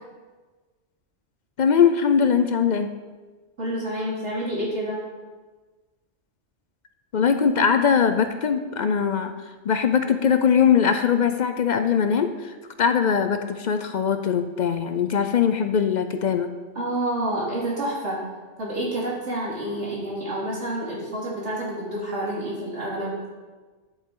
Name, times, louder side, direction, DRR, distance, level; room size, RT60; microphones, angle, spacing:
voice 1, 1.6-2.9 7.1-9.3 9.6-16.5, left 7 dB, 55° left, 8 dB, 0.5 m, -21 dB
voice 2, 3.6-5.0 16.7-18.2 18.6-23.2, right 1 dB, 70° right, -6 dB, 3.1 m, -28 dB
11.0 x 7.6 x 3.8 m, 1.3 s
omnidirectional pair, 1.2 m